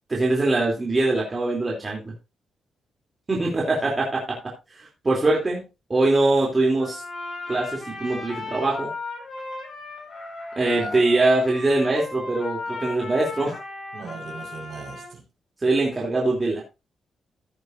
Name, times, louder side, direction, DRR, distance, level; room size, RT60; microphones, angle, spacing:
voice 1, 0.1-2.1 3.3-4.4 4.7-5.6 5.9-7.0 7.5-8.9 10.6-13.6 15.6-16.6, right 2 dB, 25° right, 3.2 m, -22 dB
Trumpet, 6.8-15.1, left 3 dB, 40° left, 5.9 m, -36 dB
voice 2, 13.9-15.2 16.1-16.2, right 4 dB, 50° right, 5.2 m, -38 dB
15.5 x 8.1 x 2.7 m
wide cardioid pair, 145°, 0 cm